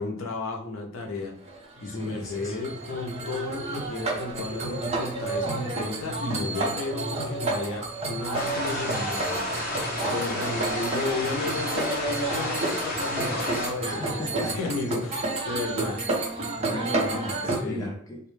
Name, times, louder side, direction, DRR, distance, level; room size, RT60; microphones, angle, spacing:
voice 1, 0.0-1.3 1.8-9.5 10.0-16.0 17.6-17.9, left 3 dB, 80° left, 1 dB, 0.6 m, -33 dB
sound 1, 1.5-17.6, right 2 dB, 30° right, 0.6 m, -31 dB
voice 2, 1.9-2.6 13.8-14.7 16.5-18.2, left 1 dB, 15° left, -1 dB, 0.4 m, -35 dB
sound 2, 8.3-13.7, left 1 dB, 45° left, 0.9 m, -32 dB
2.2 x 2.1 x 3.0 m, 0.70 s
head